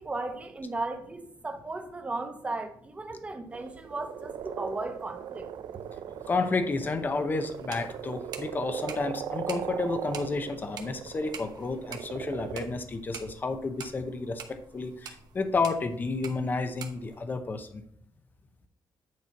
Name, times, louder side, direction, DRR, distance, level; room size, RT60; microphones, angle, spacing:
voice 1, 0.0-5.5, right 2 dB, 20° right, 0.9 m, -36 dB
sound 1, 3.5-12.7, right 9 dB, 85° right, 0.5 m, -39 dB
voice 2, 6.3-17.8, left 3 dB, 25° left, 0.7 m, -31 dB
sound 2, 7.3-17.2, right 7 dB, 60° right, 1.0 m, -47 dB
9.4 x 4.3 x 4.5 m
wide cardioid pair, 160°, 7 cm